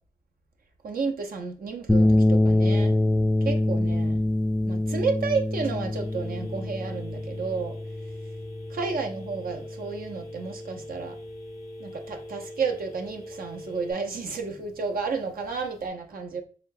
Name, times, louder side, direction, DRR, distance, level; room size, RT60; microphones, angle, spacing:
voice 1, 0.8-2.9 3.4-4.2 4.6-7.8 8.7-11.2 11.8-16.4, right 4 dB, 80° right, 0.7 m, -31 dB
sound 1, 1.9-10.4, left 1 dB, ahead, 0.4 m, -25 dB
Telephone, 5.9-13.9, left 1 dB, 90° left, 0.9 m, -42 dB
4.3 x 3.2 x 2.6 m
cardioid pair, 50°, 15 cm